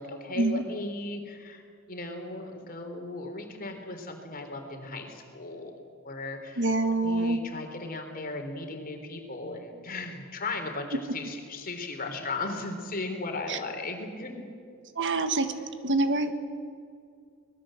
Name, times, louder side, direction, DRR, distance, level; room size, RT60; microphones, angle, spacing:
voice 1, 0.0-5.8 6.0-6.7 7.0-14.4, left 2 dB, 40° left, 4 dB, 3.6 m, -36 dB
voice 2, 6.6-7.4 13.5-13.6 14.9-15.5 15.8-16.3, right 2 dB, 60° right, 9 dB, 1.5 m, -25 dB
25.0 x 20.5 x 7.7 m, 2.3 s
head